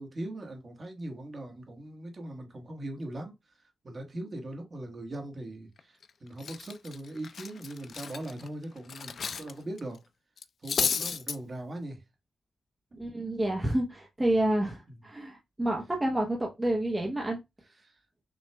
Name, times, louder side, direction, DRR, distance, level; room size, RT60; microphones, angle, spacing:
voice 1, 0.0-3.3 3.8-10.0 10.6-12.0 12.9-13.0 14.9-15.0 17.8-17.9, right 1 dB, 35° right, 1.3 m, -40 dB
Cutlery silverware, 5.8-6.0 6.4-9.5 9.8-10.0 10.4-11.4, left 6 dB, 55° left, 0.4 m, -33 dB
voice 2, 13.0-17.4, right 1 dB, 15° right, 0.8 m, -29 dB
6.1 x 2.4 x 3.3 m
wide cardioid pair, 135°, 0 cm